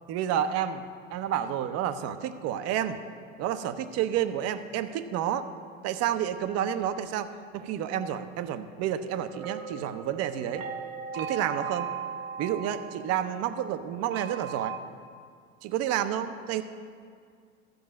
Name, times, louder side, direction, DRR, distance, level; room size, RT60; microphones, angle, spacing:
voice 1, 0.1-0.8 1.1-3.0 3.4-5.5 5.8-10.6 11.1-11.9 12.4-14.8 15.6-16.6, right 10 dB, 40° right, 11 dB, 0.7 m, -30 dB
sound 1, 9.3-14.8, right 6 dB, 75° right, 0.9 m, -38 dB
13.0 x 5.4 x 6.3 m, 2.2 s
figure-of-eight pair, 85°, 41 cm